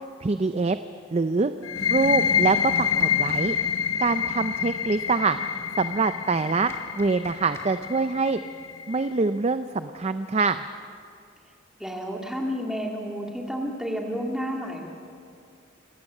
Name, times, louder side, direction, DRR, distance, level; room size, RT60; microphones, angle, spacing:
voice 1, 0.2-0.8 1.1-1.5 1.9-3.5 4.0-5.4 5.8-8.4 8.9-10.6, right 4 dB, 30° right, 10 dB, 0.5 m, -24 dB
sound 1, 1.6-9.1, left 7 dB, 80° left, 1.0 m, -27 dB
voice 2, 1.6-2.2 11.8-14.9, equal, 5° right, 0 dB, 2.1 m, -31 dB
sound 2, 2.7-3.5 6.7-7.7, left 1 dB, 15° left, 1.6 m, -46 dB
26.5 x 14.5 x 7.3 m, 2.3 s
head